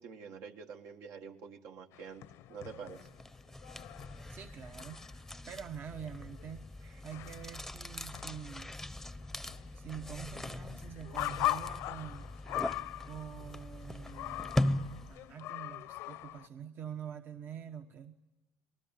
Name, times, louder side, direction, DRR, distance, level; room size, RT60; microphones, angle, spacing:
voice 1, 0.0-3.1 6.8-7.0, right 6 dB, 70° right, 5 dB, 1.9 m, -47 dB
sound 1, 1.9-5.3 5.6-5.7 5.9-7.9 8.1-16.5, left 15 dB, 75° left, 0.9 m, -41 dB
sound 2, 3.0-15.3, left 1 dB, 5° left, 0.8 m, -40 dB
voice 2, 4.3-5.0 5.5-6.7 7.0-8.7 9.7-12.3 13.1-14.8 15.1-18.1, right 8 dB, 45° right, 6 dB, 1.1 m, -46 dB
27.0 x 19.5 x 9.1 m, 1.0 s
cardioid pair, 110°, 5 cm